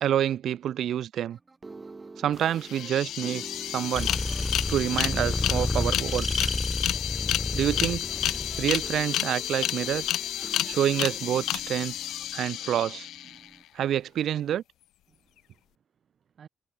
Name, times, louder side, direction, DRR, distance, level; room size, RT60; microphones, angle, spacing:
voice 1, 0.0-1.4 2.2-3.4 3.7-4.1 4.7-6.5 7.5-8.1 8.6-10.1 10.4-11.9 12.3-13.1 13.7-14.6, right 10 dB, 70° right, 0.3 m, -27 dB
sound 1, 1.2-13.6, right 3 dB, 25° right, 5.0 m, -46 dB
sound 2, 2.4-2.5 2.6-13.5, left 13 dB, 85° left, 0.8 m, -31 dB
sound 3, 3.9-9.0, left 2 dB, 15° left, 0.4 m, -30 dB
voice 2, 13.2-13.9 15.1-16.5, right 7 dB, 55° right, 3.3 m, -60 dB
cardioid pair, 90°, 0 cm